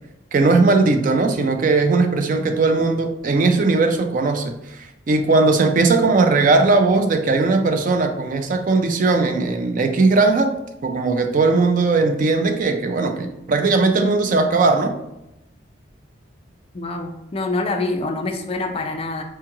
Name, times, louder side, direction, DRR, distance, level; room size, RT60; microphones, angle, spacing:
voice 1, 0.3-10.5 10.8-14.9, right 3 dB, 45° right, 6 dB, 0.3 m, -18 dB
voice 2, 16.7-19.2, left 2 dB, 30° left, 4 dB, 0.3 m, -25 dB
4.4 x 2.4 x 2.9 m, 0.88 s
head